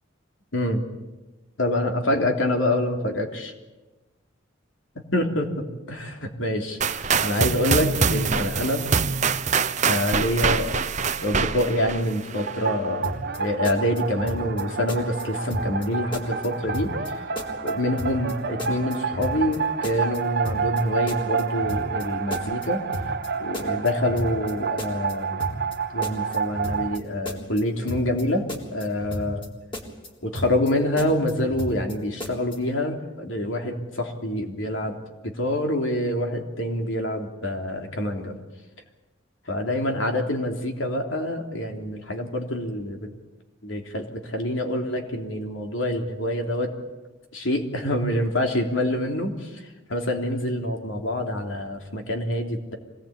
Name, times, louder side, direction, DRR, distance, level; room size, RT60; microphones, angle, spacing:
voice 1, 1.6-3.5 5.1-8.8 9.9-10.8 11.0-13.1 13.4-16.9 17.6-22.8 23.4-25.4 25.9-28.4 28.7-29.4 30.2-35.0 35.2-38.3 39.5-43.1 43.6-46.7 47.3-49.5 49.9-52.8, left 1 dB, 90° left, 3 dB, 3.3 m, -26 dB
sound 1, 6.8-12.7, right 5 dB, 40° right, 0.8 m, -24 dB
sound 2, 12.4-27.0, right 6 dB, 55° right, 1.1 m, -29 dB
sound 3, 13.0-13.4 13.6-14.6 14.9-15.2 15.5-15.9 16.1-17.1 17.4-17.7 18.0-18.3 18.6-19.6 19.8-20.2 20.5-20.8 21.1-22.0 22.3-22.7 22.9-23.3 23.5-24.5 24.8-25.1 25.4-25.8 26.0-27.0 27.3-27.6 27.9-28.2 28.5-29.5 29.7-30.1 30.4-30.7 31.0-31.9 32.2-32.6, equal, 25° left, 3.8 m, -33 dB
25.5 x 19.0 x 8.9 m, 1.1 s
head